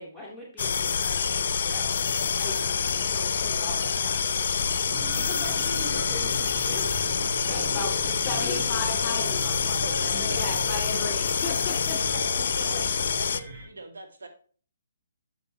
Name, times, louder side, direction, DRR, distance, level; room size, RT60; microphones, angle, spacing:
voice 1, 0.0-1.8 2.4-4.7 5.1-6.9 7.5-8.7 10.4-10.5 12.4-12.8, left 1 dB, 5° right, -4 dB, 2.4 m, -41 dB
sound 1, 0.6-13.4, left 6 dB, 50° left, 0.6 m, -27 dB
sound 2, 4.9-13.7, right 1 dB, 30° right, 4.1 m, -39 dB
voice 2, 7.5-7.9 8.2-12.0, left 3 dB, 20° left, 2 dB, 3.1 m, -34 dB
voice 3, 9.8-11.2 12.0-12.8 13.2-14.3, right 3 dB, 65° right, 2 dB, 2.4 m, -41 dB
9.3 x 7.2 x 3.2 m, 0.42 s
figure-of-eight pair, 135°, 0 cm